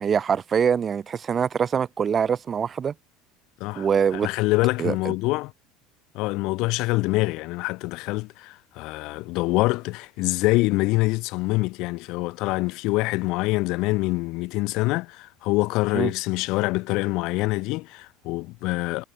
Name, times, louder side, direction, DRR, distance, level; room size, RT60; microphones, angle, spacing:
voice 1, 0.0-2.9 3.8-4.3 4.8-5.1 15.9-16.1, right 7 dB, 30° right, 0.8 m, -24 dB
voice 2, 4.2-5.5 6.1-19.0, left 22 dB, 65° left, 3.8 m, -25 dB
supercardioid pair, 120°, 0 cm